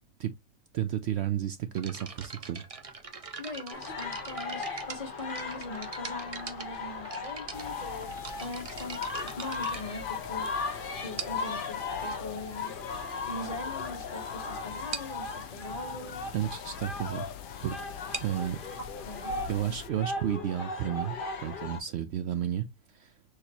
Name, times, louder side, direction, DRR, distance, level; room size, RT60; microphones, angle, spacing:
voice 1, 0.7-2.6 16.3-17.3 17.6-17.9 18.2-18.6 19.5-23.1, right 10 dB, 65° right, 0.8 m, -32 dB
sound 1, 1.7-10.6 11.2-11.6 12.4-12.5 13.1-13.2 13.5-13.7 14.0-14.1 14.4-14.5 14.9-15.2 17.9-21.4, right 4 dB, 35° right, 0.7 m, -43 dB
voice 2, 3.4-8.1 8.4-16.3 19.1-19.7, left 2 dB, 30° left, 1.5 m, -42 dB
sound 2, 3.7-21.8, left 4 dB, 45° left, 1.0 m, -37 dB
sound 3, 7.5-19.9, left 11 dB, 75° left, 0.9 m, -46 dB
6.5 x 2.9 x 2.9 m
omnidirectional pair, 1.4 m